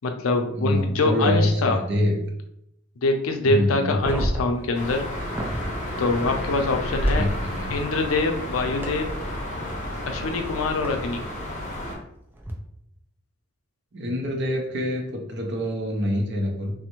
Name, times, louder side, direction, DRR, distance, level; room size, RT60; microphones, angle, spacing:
voice 1, 0.0-1.8 3.0-5.0 6.0-7.2 7.7-9.1 10.0-11.2, left 3 dB, 85° left, 5 dB, 0.5 m, -24 dB
voice 2, 0.5-2.2 3.4-4.0 7.1-7.8 13.9-16.7, left 1 dB, 60° right, 2 dB, 0.6 m, -25 dB
sound 1, 3.9-5.7 7.1-7.2 8.8-8.9 10.8-10.9 12.3-12.5, equal, 10° right, 0.4 m, -30 dB
sound 2, 4.7-11.9, equal, 35° left, 0.7 m, -30 dB
3.2 x 2.0 x 3.0 m, 0.79 s
head